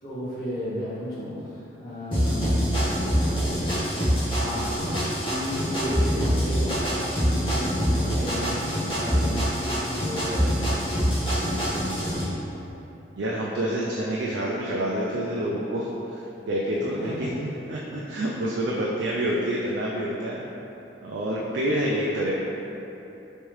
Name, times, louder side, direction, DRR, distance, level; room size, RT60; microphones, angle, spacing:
voice 1, 0.0-2.6 3.2-4.8 5.2-7.7 8.0-8.6 9.0-11.0 16.8-17.3, equal, 55° left, -14 dB, 1.4 m, -34 dB
sound 1, 2.1-12.2, equal, 30° left, 1.1 m, -25 dB
voice 2, 13.2-15.9 16.5-20.4 21.0-22.3, right 1 dB, 70° right, -4 dB, 0.4 m, -27 dB
3.5 x 3.2 x 3.1 m, 3.0 s
head